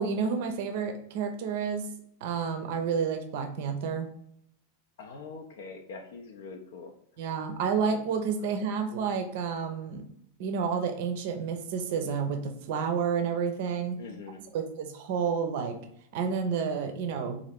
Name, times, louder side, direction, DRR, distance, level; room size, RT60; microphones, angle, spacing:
voice 1, 0.0-1.9 2.2-4.1 7.2-10.0 10.4-14.0 14.5-15.8 16.1-17.4, right 6 dB, 50° right, 6 dB, 0.5 m, -30 dB
voice 2, 5.0-6.9 14.0-14.4, left 4 dB, 55° left, 3 dB, 0.4 m, -43 dB
3.9 x 2.5 x 3.4 m, 0.70 s
figure-of-eight pair, 90°, 0 cm